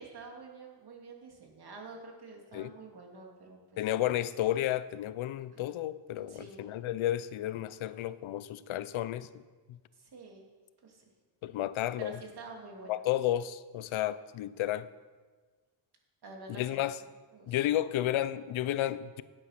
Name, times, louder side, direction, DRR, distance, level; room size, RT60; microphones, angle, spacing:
voice 1, 0.0-3.6 5.5-5.6 6.1-6.7 10.0-10.4 10.8-11.0 12.0-13.0 16.2-16.9 17.3-17.6, right 3 dB, 55° right, 0 dB, 2.7 m, -48 dB
voice 2, 3.8-9.3 9.7-9.8 11.4-12.2 12.9-14.9 16.5-17.0 17.5-19.2, left 13 dB, 80° left, 16 dB, 0.7 m, -32 dB
11.5 x 9.0 x 5.8 m, 1.4 s
cardioid pair, 95°, 47 cm